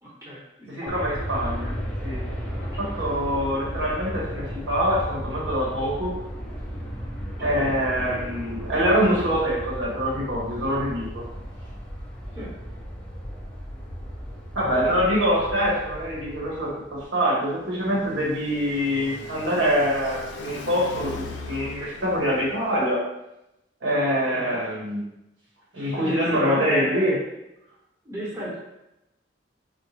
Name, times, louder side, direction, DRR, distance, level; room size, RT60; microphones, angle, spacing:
voice 1, 0.0-1.1 2.5-3.0 7.4-7.7 12.3-12.5 24.3-24.6 25.9-27.1 28.0-28.5, equal, 15° right, -6 dB, 1.0 m, -34 dB
voice 2, 0.7-1.7 2.0-2.2 2.8-6.2 7.4-11.2 14.5-23.0 23.8-25.0 25.7-27.2, equal, 90° right, -5 dB, 1.2 m, -24 dB
Aircraft, 0.9-17.0, equal, 5° left, 0.5 m, -35 dB
Car passing by, 17.3-22.8, left 4 dB, 85° left, 0.5 m, -40 dB
4.3 x 2.1 x 3.0 m, 0.89 s
head